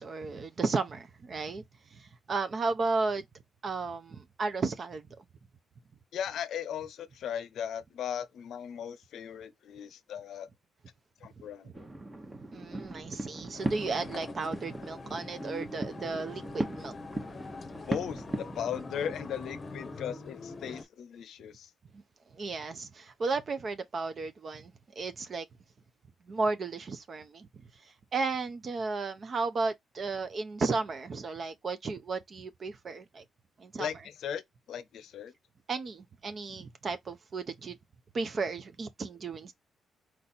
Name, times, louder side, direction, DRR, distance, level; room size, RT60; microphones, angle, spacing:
voice 1, 0.0-1.6 1.9-3.2 3.6-5.0 12.5-16.9 21.9-22.0 22.3-25.5 26.3-27.5 28.1-33.2 33.6-33.9 35.7-37.8 38.1-39.5, right 4 dB, 45° right, 0.6 m, -34 dB
voice 2, 6.1-10.5 11.2-11.9 17.9-21.7 33.8-35.3, left 9 dB, 75° left, 0.6 m, -37 dB
sound 1, 11.7-19.3, right 1 dB, 20° right, 0.9 m, -39 dB
sound 2, 13.5-20.8, left 3 dB, 35° left, 0.8 m, -43 dB
4.5 x 2.6 x 4.1 m
cardioid pair, 105°, 0 cm